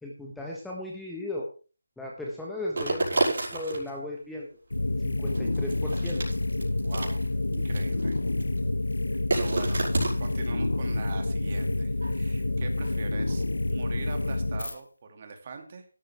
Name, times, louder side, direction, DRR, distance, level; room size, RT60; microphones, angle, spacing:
voice 1, 0.0-1.5 2.0-4.5 5.0-6.2, left 1 dB, ahead, -3 dB, 1.3 m, -36 dB
sound 1, 2.8-3.9 5.3-7.3 7.5-8.6 9.3-10.5 11.5-11.6 12.0-13.0, right 2 dB, 55° right, 5.5 m, -30 dB
sound 2, 4.7-14.7, left 2 dB, 85° left, 1.6 m, -28 dB
voice 2, 6.8-7.2 7.5-8.2 9.3-9.9 10.2-13.4 13.7-15.8, right 4 dB, 35° right, 5 dB, 2.5 m, -42 dB
12.0 x 12.0 x 3.6 m, 0.36 s
figure-of-eight pair, 165°, 0 cm